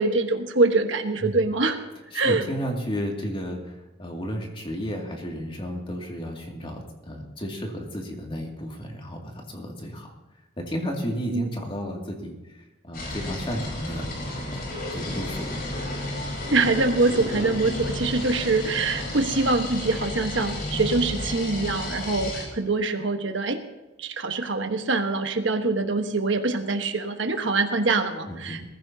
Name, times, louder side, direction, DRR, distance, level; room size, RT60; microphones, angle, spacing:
voice 1, 0.0-1.8 2.1-2.4 11.3-11.5 16.5-23.6 24.0-28.6, right 3 dB, 70° right, 6 dB, 1.3 m, -24 dB
voice 2, 2.1-10.1 10.6-15.6 28.3-28.6, equal, 25° left, 0 dB, 2.4 m, -33 dB
sound 1, 12.9-22.4, left 1 dB, 50° left, 4.5 m, -32 dB
20.5 x 15.0 x 2.8 m, 1.1 s
head